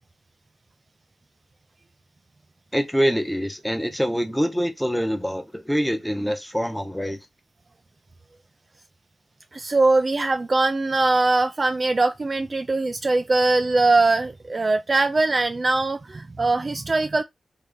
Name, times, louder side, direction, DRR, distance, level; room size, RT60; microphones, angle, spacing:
voice 1, 2.7-7.2, equal, ahead, 0.8 m, -25 dB
voice 2, 9.5-17.2, right 3 dB, 35° right, 0.3 m, -21 dB
3.8 x 2.7 x 3.4 m
wide cardioid pair, 105°, 0 cm